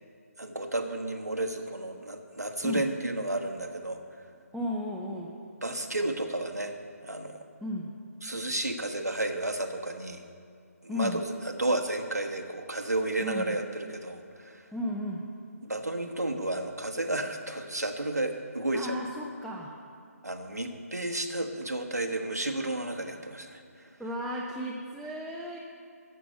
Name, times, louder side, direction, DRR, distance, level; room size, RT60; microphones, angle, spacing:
voice 1, 0.4-4.0 5.6-6.7 7.0-7.4 8.2-10.2 10.8-14.6 15.6-19.0 20.2-23.6, right 2 dB, 85° right, 4 dB, 1.3 m, -32 dB
voice 2, 4.5-5.3 7.6-7.9 10.9-11.2 13.2-13.6 14.7-15.2 18.7-19.7 24.0-25.6, left 1 dB, ahead, -4 dB, 0.5 m, -34 dB
14.5 x 6.0 x 8.1 m, 2.3 s
figure-of-eight pair, 145°, 9 cm